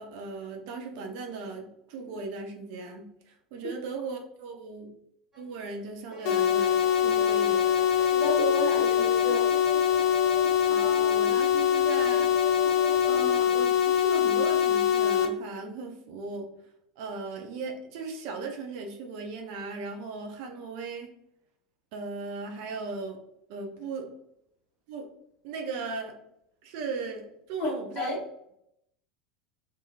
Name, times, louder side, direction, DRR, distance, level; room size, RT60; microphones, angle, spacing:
voice 1, 0.0-4.9 5.4-6.8 7.0-7.7 10.7-12.4 13.1-16.5 17.0-21.1 21.9-23.2 23.5-24.1 24.9-25.1 25.4-26.2 26.6-28.2, right 4 dB, 50° right, 3 dB, 0.5 m, -37 dB
sound 1, 5.3-5.4 6.1-13.4, right 2 dB, 15° right, 0.7 m, -41 dB
sound 2, 6.3-15.3, left 9 dB, 55° left, 0.4 m, -23 dB
voice 2, 8.1-9.5 27.6-27.7 28.0-28.2, left 1 dB, 35° left, -3 dB, 1.0 m, -30 dB
2.8 x 2.5 x 2.3 m, 0.76 s
figure-of-eight pair, 75°, 3 cm